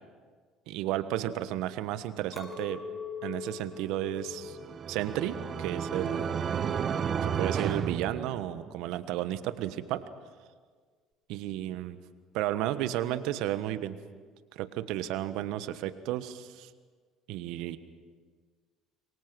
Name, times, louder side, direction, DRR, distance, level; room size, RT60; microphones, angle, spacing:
voice 1, 0.7-2.8 3.2-4.6 4.9-6.3 7.2-10.0 11.3-12.0 12.3-14.0 14.5-16.7 17.3-17.8, right 13 dB, 70° right, 12 dB, 1.3 m, -33 dB
Chink clink, 2.3-7.7, left 6 dB, 25° left, 7.1 m, -44 dB
sound 1, 4.3-8.9, right 7 dB, 45° right, 1.3 m, -32 dB
27.5 x 23.0 x 6.2 m, 1.6 s
hypercardioid pair, 65°, 0 cm